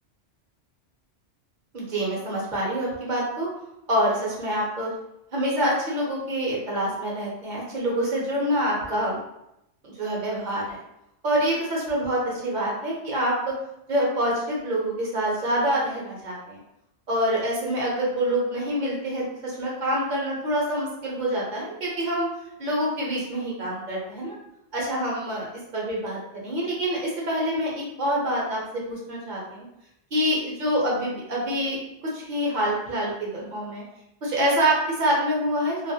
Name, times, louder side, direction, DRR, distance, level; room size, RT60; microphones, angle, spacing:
voice 1, 1.7-3.5 3.9-4.9 5.3-9.2 9.8-10.8 11.2-13.5 13.9-16.6 17.1-22.3 22.6-24.3 24.7-25.5 25.7-28.6 28.9-29.6 30.1-31.8 32.0-33.8 34.2-35.9, equal, 45° right, -4 dB, 0.8 m, -26 dB
2.3 x 2.0 x 2.6 m, 0.83 s
omnidirectional pair, 1.2 m